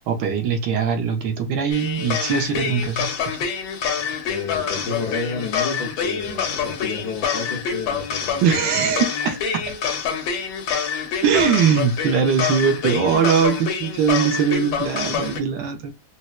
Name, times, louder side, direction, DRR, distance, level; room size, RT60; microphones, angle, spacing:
voice 1, 0.1-3.5 8.4-9.6 11.2-15.9, right 6 dB, 75° right, 1.3 m, -21 dB
sound 1, 1.7-15.4, left 6 dB, 80° left, 1.5 m, -26 dB
voice 2, 4.3-8.4, left 4 dB, 65° left, 1.0 m, -31 dB
4.2 x 2.1 x 2.3 m
omnidirectional pair, 2.1 m